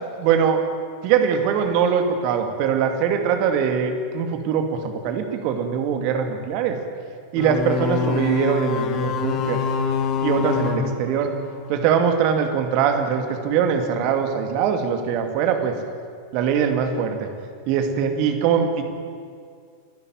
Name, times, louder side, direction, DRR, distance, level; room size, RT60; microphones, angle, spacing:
voice 1, 0.2-0.6 1.0-6.8 7.3-9.6 10.2-11.4 11.7-15.7 16.3-17.2 17.7-18.8, right 7 dB, 45° right, 6 dB, 2.5 m, -22 dB
sound 1, 7.4-11.8, left 6 dB, 35° left, 1.8 m, -25 dB
27.5 x 12.5 x 9.2 m, 2.2 s
figure-of-eight pair, 90°, 0 cm